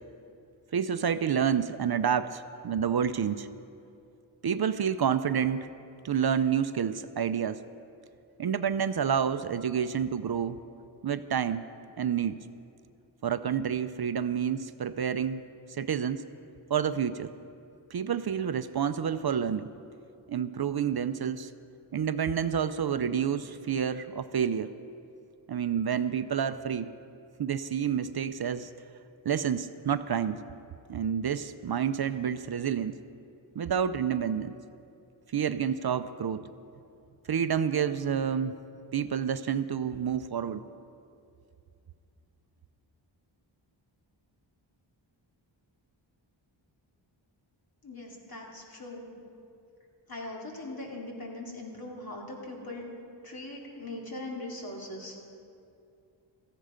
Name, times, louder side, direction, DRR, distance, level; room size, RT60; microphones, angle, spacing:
voice 1, 0.7-3.5 4.4-5.7 6.0-7.6 8.4-10.6 11.0-11.6 12.0-12.4 13.2-15.4 15.8-16.2 16.7-17.3 17.9-19.7 20.3-21.5 21.9-24.7 25.5-26.9 27.4-28.7 29.3-30.4 30.9-33.0 33.6-34.6 35.3-36.5 37.3-38.5 38.9-40.6, right 8 dB, 55° right, 11 dB, 0.5 m, -29 dB
voice 2, 47.8-49.1 50.1-52.9 53.2-55.2, left 2 dB, 50° left, -1 dB, 2.7 m, -40 dB
16.5 x 14.5 x 5.0 m, 2.6 s
wide cardioid pair, 115°, 47 cm